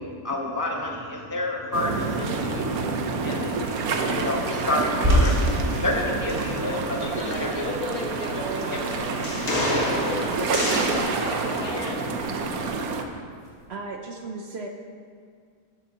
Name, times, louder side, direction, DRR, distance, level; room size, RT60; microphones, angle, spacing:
voice 1, 0.0-7.7, left 1 dB, 20° right, 0 dB, 0.5 m, -30 dB
sound 1, 1.7-13.0, right 4 dB, 85° right, 1.2 m, -28 dB
sound 2, 1.9-13.7, equal, 40° right, 2.5 m, -32 dB
sound 3, 3.6-11.0, left 1 dB, 50° left, 1.8 m, -32 dB
voice 2, 7.2-9.2 9.6-10.5 10.9-12.8, left 1 dB, 85° left, -3 dB, 2.2 m, -35 dB
voice 3, 13.7-14.7, right 3 dB, 60° right, 3 dB, 0.8 m, -35 dB
13.5 x 8.9 x 2.9 m, 2.1 s
omnidirectional pair, 1.5 m